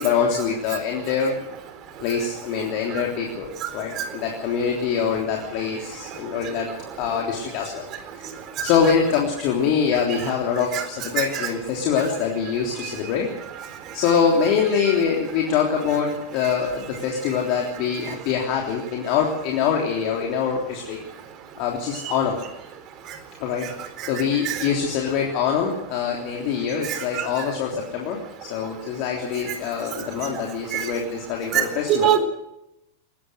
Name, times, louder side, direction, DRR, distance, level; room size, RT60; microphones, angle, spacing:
voice 1, 0.0-1.3 2.0-6.7 7.0-7.8 8.2-8.3 8.6-13.3 13.9-21.0 21.6-22.4 23.4-23.7 24.0-32.1, left 7 dB, 45° left, 0 dB, 3.4 m, -24 dB
voice 2, 26.9-27.3 30.7-30.8 31.5-31.6 31.9-32.2, right 11 dB, 35° right, 8 dB, 4.1 m, -22 dB
21.5 x 19.0 x 6.5 m, 0.85 s
figure-of-eight pair, 90°, 0 cm